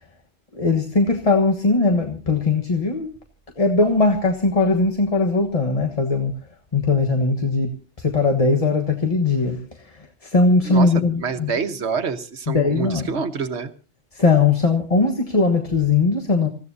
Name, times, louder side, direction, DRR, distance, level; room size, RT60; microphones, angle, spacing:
voice 1, 0.5-3.1 3.6-6.3 6.7-11.5 12.5-13.2 14.1-16.5, left 3 dB, 35° left, 1.4 m, -20 dB
voice 2, 10.7-13.7, right 5 dB, 90° right, 1.5 m, -27 dB
27.5 x 15.5 x 2.7 m
omnidirectional pair, 1.1 m